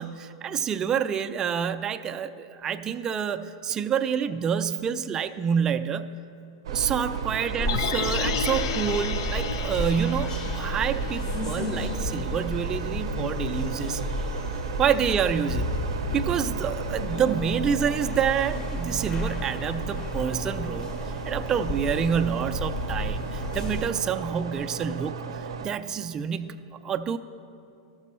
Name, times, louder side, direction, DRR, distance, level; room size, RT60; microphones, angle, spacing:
voice 1, 0.0-6.1 6.7-14.0 14.8-15.7 16.1-20.9 21.3-27.2, right 7 dB, 25° right, 8 dB, 0.4 m, -28 dB
sound 1, 6.6-25.7, right 6 dB, 80° right, 0.5 m, -35 dB
sound 2, 7.6-23.9, left 1 dB, 30° left, 0.8 m, -32 dB
sound 3, 7.7-11.9 12.2-12.3, left 8 dB, 75° left, 0.4 m, -33 dB
13.0 x 6.1 x 4.3 m, 2.6 s
hypercardioid pair, 120°, 3 cm